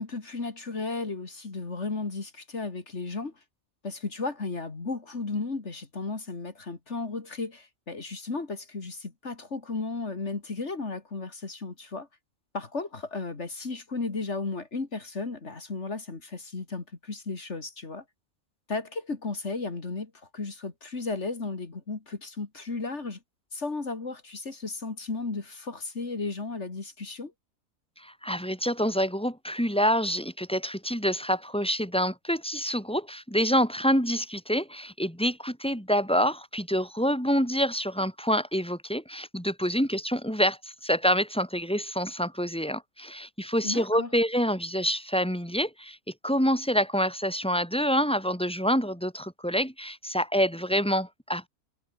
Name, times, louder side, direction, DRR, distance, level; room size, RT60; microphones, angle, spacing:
voice 1, 0.0-3.3 3.8-12.1 12.5-18.0 18.7-23.2 23.5-27.3 43.6-44.1, left 3 dB, 55° left, 2.8 m, -34 dB
voice 2, 28.0-46.0 46.2-51.5, equal, 5° left, 5.3 m, -27 dB
omnidirectional pair, 1.4 m